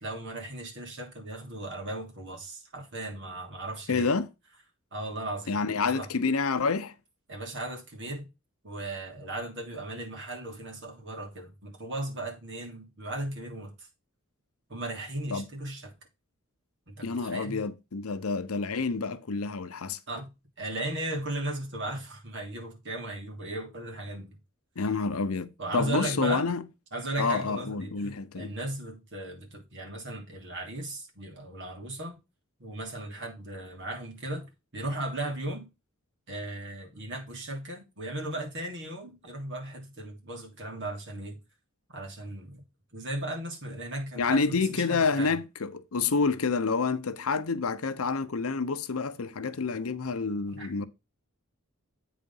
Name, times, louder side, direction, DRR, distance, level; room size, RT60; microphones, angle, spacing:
voice 1, 0.0-4.1 4.9-6.1 7.3-8.3 8.6-13.9 14.7-16.0 16.9-17.6 20.1-20.3 20.6-24.4 25.6-26.4 26.9-32.2 32.6-35.7 36.3-41.4 41.9-42.6 42.9-45.4 50.6-50.9, right 1 dB, 60° right, 2.9 m, -36 dB
voice 2, 3.9-4.3 5.5-6.9 15.3-15.5 17.0-20.0 24.8-26.6 27.2-28.5 44.2-50.9, left 4 dB, 85° left, 0.8 m, -28 dB
8.5 x 4.1 x 5.5 m
head